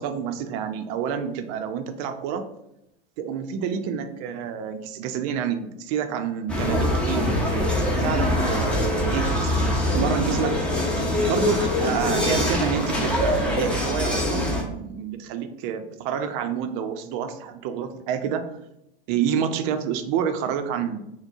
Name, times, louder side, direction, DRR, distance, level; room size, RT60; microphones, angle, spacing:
voice 1, 0.0-2.4 3.2-9.5 9.9-10.6 11.3-18.5 19.1-21.1, right 7 dB, 50° right, 8 dB, 0.6 m, -28 dB
sound 1, 6.5-14.6, left 1 dB, 5° left, 0.9 m, -23 dB
5.8 x 2.2 x 2.6 m, 0.83 s
hypercardioid pair, 95°, 29 cm